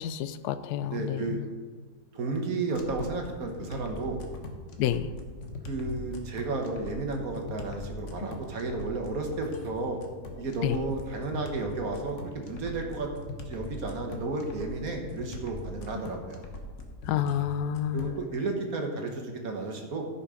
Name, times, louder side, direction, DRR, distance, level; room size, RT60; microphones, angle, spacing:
voice 1, 0.0-1.5 4.8-5.1 10.6-10.8 17.0-18.2, left 10 dB, 75° left, 13 dB, 1.1 m, -29 dB
voice 2, 0.9-1.4 2.1-4.2 5.7-10.0 10.4-13.1 13.5-16.4 17.9-20.0, right 3 dB, 55° right, 3 dB, 1.7 m, -33 dB
sound 1, 2.7-18.2, left 2 dB, 50° left, 1.3 m, -41 dB
14.0 x 5.7 x 5.1 m, 1.5 s
omnidirectional pair, 1.8 m